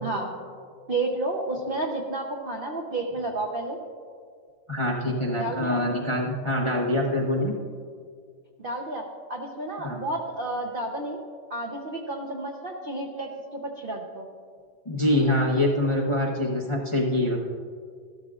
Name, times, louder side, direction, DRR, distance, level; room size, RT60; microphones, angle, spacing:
voice 1, 0.9-3.8 5.4-5.8 8.6-11.2 11.5-14.3, right 2 dB, 50° right, 0 dB, 0.6 m, -31 dB
voice 2, 4.7-7.5 9.8-10.0 14.9-17.5, left 1 dB, 25° left, -2 dB, 0.7 m, -25 dB
14.0 x 12.5 x 2.4 m, 2.1 s
omnidirectional pair, 2.1 m